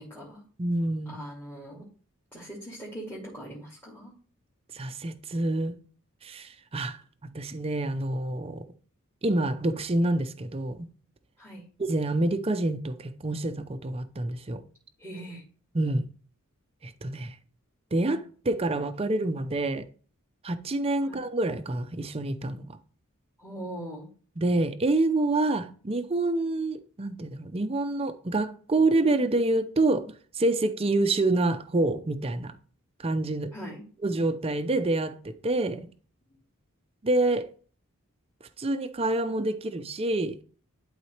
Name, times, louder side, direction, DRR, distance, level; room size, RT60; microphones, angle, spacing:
voice 1, 0.0-0.4 1.1-1.9 2.3-4.1 11.4-11.6 15.0-15.4 21.0-21.2 23.4-24.1 33.5-33.8, right 1 dB, 10° left, 2.0 m, -41 dB
voice 2, 0.6-1.2 4.7-5.8 6.2-7.0 7.3-8.6 9.2-10.9 11.8-14.6 15.7-16.0 16.8-17.3 17.9-19.8 20.4-22.8 24.4-32.5 33.0-33.5 34.0-35.8 37.0-37.5 38.6-40.4, right 2 dB, 25° right, 0.5 m, -27 dB
11.5 x 4.0 x 3.3 m
head